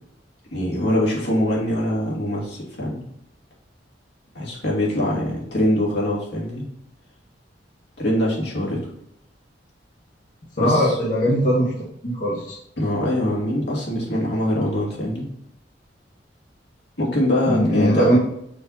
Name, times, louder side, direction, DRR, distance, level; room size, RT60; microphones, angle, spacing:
voice 1, 0.5-3.0 4.3-6.6 8.0-8.8 10.6-11.0 12.8-15.3 17.0-18.1, left 1 dB, 65° left, -4 dB, 2.7 m, -23 dB
voice 2, 10.6-11.7 12.0-12.6 17.5-18.2, equal, 45° left, -7 dB, 1.9 m, -19 dB
6.6 x 5.6 x 4.2 m, 0.73 s
head